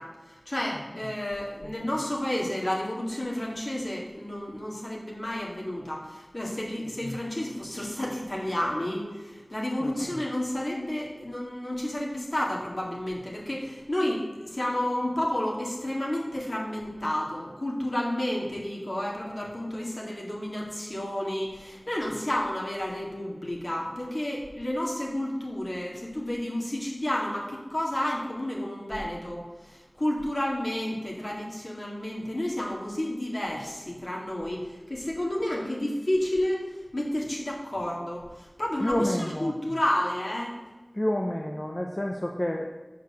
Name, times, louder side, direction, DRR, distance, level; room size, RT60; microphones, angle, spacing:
voice 1, 0.0-36.7 36.9-40.6, left 1 dB, 65° left, -3 dB, 2.1 m, -31 dB
voice 2, 38.8-39.5 40.9-42.7, left 1 dB, 35° left, 1 dB, 0.7 m, -29 dB
6.7 x 4.8 x 6.8 m, 1.2 s
wide cardioid pair, 40°, 0 cm